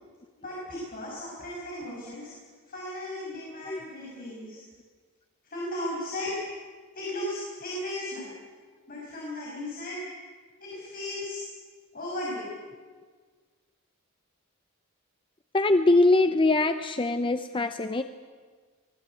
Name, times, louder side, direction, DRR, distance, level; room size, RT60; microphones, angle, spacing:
voice 1, 0.4-2.3 2.6-4.6 5.4-6.4 6.9-8.3 8.9-10.0 10.6-11.4 11.9-12.5, left 1 dB, 45° left, -5 dB, 6.3 m, -36 dB
voice 2, 15.5-18.0, left 2 dB, 25° left, 9 dB, 0.7 m, -22 dB
24.5 x 19.5 x 8.4 m, 1.5 s
head